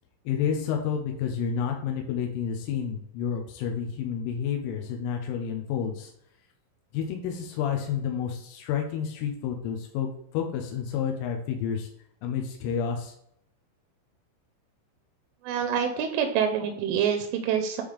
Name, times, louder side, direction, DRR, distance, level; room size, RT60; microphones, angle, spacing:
voice 1, 0.3-6.1 6.9-11.9 12.2-13.1, left 7 dB, 90° left, 2 dB, 3.3 m, -30 dB
voice 2, 15.4-17.8, right 8 dB, 85° right, 4 dB, 3.0 m, -26 dB
9.0 x 3.5 x 3.3 m, 0.71 s
omnidirectional pair, 5.7 m